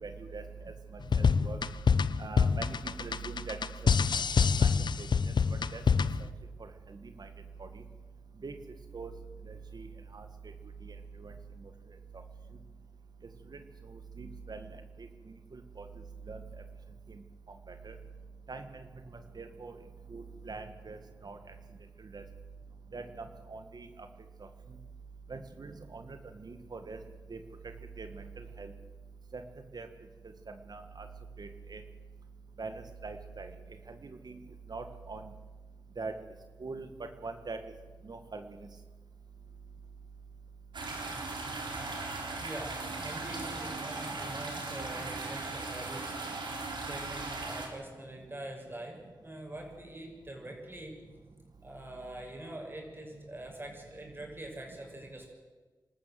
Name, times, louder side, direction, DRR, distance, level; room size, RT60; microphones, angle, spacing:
voice 1, 0.0-0.7 1.1-1.6 2.2-3.6 4.6-4.7 5.0-5.1 5.7-5.8 6.6-7.3 7.6-7.8 8.4-8.5 8.9-9.1 9.5-9.9 10.1-10.3 10.8-11.3 13.5-13.6 13.9-14.7 15.0-15.1 15.5-15.9 16.3-16.4 17.1-17.2 17.7-18.0 18.5-18.8 19.4-19.8 20.1-21.4 22.1-22.2 22.9-23.0 23.5-23.9 25.3-27.0 27.3-27.4 28.0-28.7 29.3-29.4 29.7-29.9 30.7-31.1 31.4-31.8 32.6-32.7 33.0-33.5 34.0-34.4 34.7-35.3 36.0-36.1 36.6-36.9 37.2-37.6 38.0-38.5, right 4 dB, 60° right, 7 dB, 1.8 m, -42 dB
sound 1, 1.0-6.3, left 5 dB, 75° left, 0.7 m, -26 dB
sound 2, 40.7-47.7, right 3 dB, 85° right, 3.6 m, -38 dB
voice 2, 42.4-46.1 46.8-50.9 51.6-55.2, right 1 dB, 30° right, 1 dB, 6.4 m, -44 dB
26.5 x 13.0 x 7.7 m, 1.3 s
wide cardioid pair, 70°, 8 cm